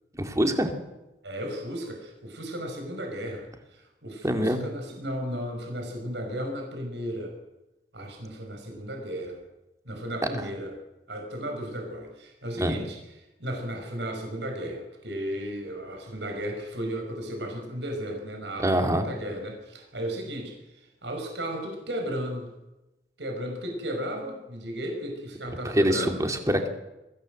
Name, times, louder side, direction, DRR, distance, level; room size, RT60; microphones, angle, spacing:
voice 1, 0.2-0.7 4.2-4.6 12.6-12.8 18.6-19.0 25.7-26.7, equal, 20° right, 5 dB, 2.4 m, -24 dB
voice 2, 1.2-7.4 7.9-9.4 9.9-10.8 11.1-13.0 13.4-22.5 23.2-26.2, equal, 75° right, 3 dB, 5.5 m, -34 dB
23.0 x 16.5 x 7.8 m, 0.98 s
head